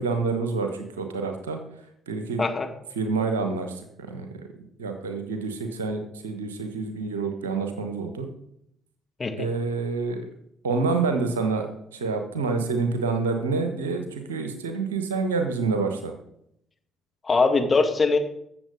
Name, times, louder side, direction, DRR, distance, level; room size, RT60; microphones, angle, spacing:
voice 1, 0.0-1.6 2.1-2.4 3.0-3.7 4.1-4.3 4.8-8.3 9.4-10.2 10.6-11.7 11.9-16.1, right 4 dB, 80° right, 6 dB, 1.2 m, -27 dB
voice 2, 17.2-18.2, left 4 dB, 30° left, 4 dB, 1.8 m, -22 dB
14.0 x 7.0 x 5.2 m, 0.75 s
figure-of-eight pair, 45°, 0 cm